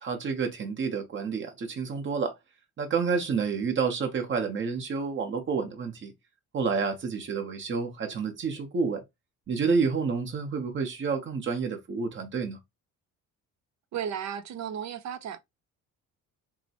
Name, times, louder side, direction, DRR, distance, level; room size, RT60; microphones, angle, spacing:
voice 1, 0.0-2.3 2.8-6.1 6.5-9.0 9.5-12.6, right 5 dB, 35° right, 1.0 m, -29 dB
voice 2, 13.9-15.4, right 8 dB, 55° right, 0.5 m, -34 dB
5.9 x 2.1 x 2.9 m
cardioid pair, 165°, 32 cm